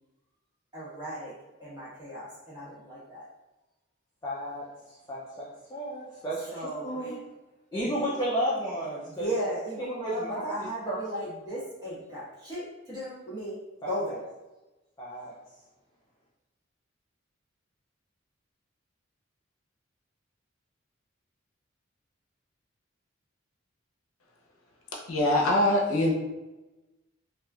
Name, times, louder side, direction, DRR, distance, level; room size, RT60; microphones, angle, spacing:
voice 1, 0.7-1.3 1.6-3.3 6.5-7.2 7.7-8.1 9.0-14.2, equal, 20° right, -10 dB, 1.2 m, -36 dB
voice 2, 4.2-6.5 6.8-7.2 7.7-9.3 9.8-11.0 15.0-15.3, equal, 20° left, -8 dB, 0.4 m, -33 dB
voice 3, 24.9-26.1, left 1 dB, 85° left, -1 dB, 0.6 m, -23 dB
3.0 x 2.4 x 2.3 m, 1.0 s
head